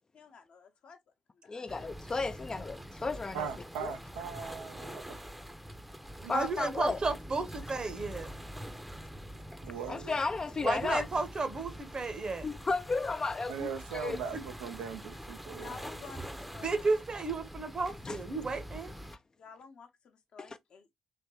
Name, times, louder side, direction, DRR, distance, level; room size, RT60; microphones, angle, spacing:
voice 1, 0.1-1.0 1.4-1.6 15.5-17.0 19.4-20.9, left 5 dB, 55° left, 0.8 m, -51 dB
voice 2, 1.5-3.5 3.8-4.0 6.3-7.0 9.9-11.1 12.4-14.2 18.0-18.2 20.4-20.5, left 4 dB, 30° left, 0.4 m, -33 dB
sound 1, 1.7-19.2, equal, 5° right, 0.6 m, -45 dB
voice 3, 3.3-5.3 9.6-10.1 13.5-15.7, right 7 dB, 75° right, 0.4 m, -40 dB
voice 4, 6.2-8.3 10.6-12.5 14.3-14.4 16.6-18.9, right 3 dB, 40° right, 0.8 m, -33 dB
3.4 x 2.9 x 2.9 m
figure-of-eight pair, 40°, 2 cm